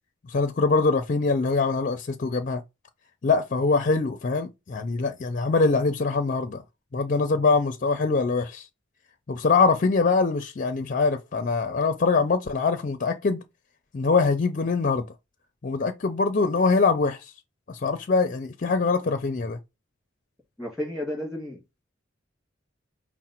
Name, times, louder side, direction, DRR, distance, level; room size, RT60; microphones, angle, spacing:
voice 1, 0.3-2.6 3.2-6.6 6.9-8.7 9.3-13.4 13.9-15.0 15.6-17.3 17.7-19.6, left 4 dB, 40° left, 0.4 m, -23 dB
voice 2, 20.6-21.6, left 1 dB, ahead, 2.1 m, -32 dB
4.9 x 2.1 x 4.3 m
head